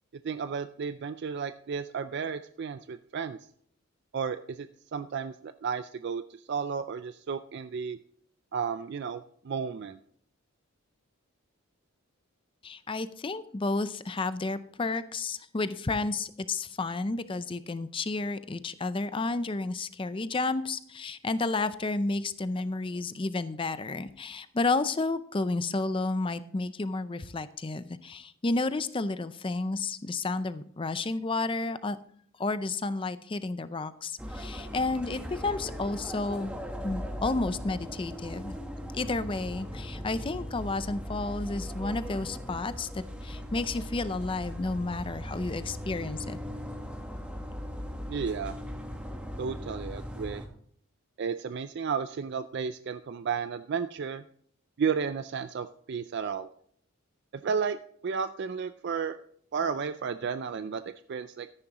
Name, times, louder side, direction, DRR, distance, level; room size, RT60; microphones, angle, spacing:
voice 1, 0.2-3.4 4.1-8.0 8.5-10.0 48.1-48.6 49.4-50.4 51.2-54.2 54.8-56.5 57.3-57.8 58.0-59.2 59.5-61.5, right 6 dB, 50° right, 10 dB, 0.3 m, -33 dB
voice 2, 12.6-32.0 32.4-36.6 36.8-38.6 38.9-46.4, left 3 dB, 25° left, 13 dB, 0.5 m, -31 dB
sound 1, 34.2-50.5, equal, 5° right, 1.2 m, -39 dB
13.5 x 9.9 x 3.0 m, 0.64 s
head